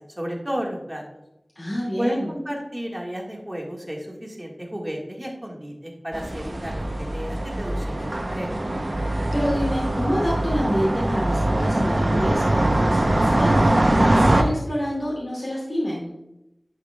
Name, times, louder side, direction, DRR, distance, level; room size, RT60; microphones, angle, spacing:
voice 1, 0.2-1.0 2.0-8.5, equal, 15° right, -1 dB, 1.7 m, -32 dB
voice 2, 1.6-2.3 9.0-16.1, equal, 50° left, -6 dB, 2.3 m, -27 dB
sound 1, 6.1-14.4, right 1 dB, 50° right, 0.8 m, -22 dB
10.5 x 5.0 x 2.3 m, 0.88 s
wide cardioid pair, 50°, 0 cm